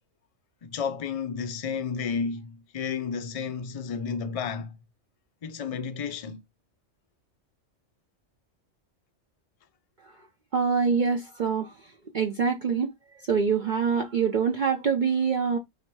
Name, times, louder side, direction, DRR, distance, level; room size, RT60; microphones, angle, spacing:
voice 1, 0.6-4.8 5.4-6.4, left 6 dB, 60° left, 0.3 m, -32 dB
voice 2, 10.5-11.7 12.1-12.9 13.3-15.6, right 6 dB, 50° right, 0.6 m, -25 dB
3.0 x 2.9 x 4.5 m
omnidirectional pair, 1.3 m